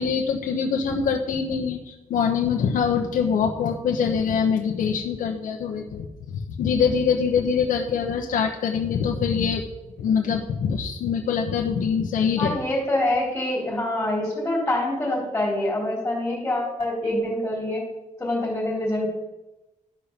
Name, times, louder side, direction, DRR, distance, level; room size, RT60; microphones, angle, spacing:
voice 1, 0.0-9.6 10.0-12.6, left 6 dB, 85° left, 1 dB, 1.1 m, -24 dB
voice 2, 12.4-17.8 18.2-19.1, left 1 dB, 10° left, -5 dB, 3.7 m, -25 dB
12.0 x 5.8 x 6.9 m, 1.0 s
wide cardioid pair, 175°, 13 cm